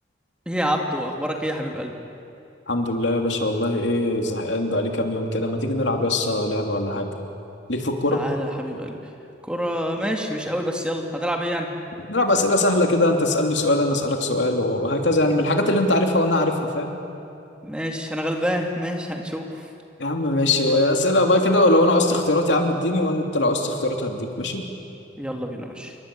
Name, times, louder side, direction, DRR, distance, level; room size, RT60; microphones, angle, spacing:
voice 1, 0.5-1.9 8.1-9.0 9.4-11.7 17.6-19.7 20.7-20.9 25.2-26.0, equal, 5° right, 2 dB, 2.3 m, -27 dB
voice 2, 2.7-7.1 7.7-8.2 12.1-16.9 20.0-24.6, left 1 dB, 70° left, 3 dB, 3.0 m, -21 dB
28.5 x 24.0 x 8.6 m, 2.7 s
head